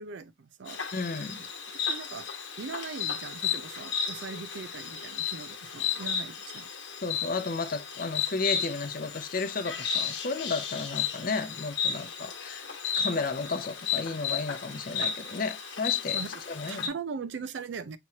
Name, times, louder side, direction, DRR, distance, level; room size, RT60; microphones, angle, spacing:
voice 1, 0.0-0.9 1.9-2.3 2.6-6.7 16.1-16.4 16.7-18.0, right 5 dB, 65° right, 0.4 m, -40 dB
Insect, 0.7-16.9, left 7 dB, 65° left, 1.0 m, -34 dB
voice 2, 0.9-1.4 7.0-12.7 13.0-16.2 16.5-16.9, left 4 dB, 45° left, 0.6 m, -33 dB
6.0 x 3.1 x 2.7 m
head